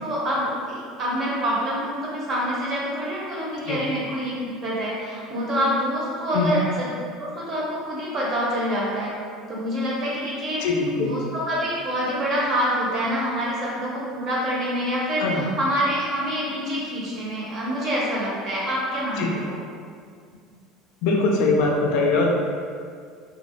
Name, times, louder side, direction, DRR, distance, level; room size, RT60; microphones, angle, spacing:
voice 1, 0.0-6.9 7.2-9.2 9.5-10.6 11.0-19.5, equal, 35° right, -5 dB, 0.7 m, -26 dB
voice 2, 10.6-11.1 15.2-15.4 19.2-19.3 21.0-22.3, left 3 dB, 70° left, 0 dB, 0.3 m, -21 dB
2.4 x 2.0 x 2.6 m, 2.1 s
cardioid pair, 145°, 0 cm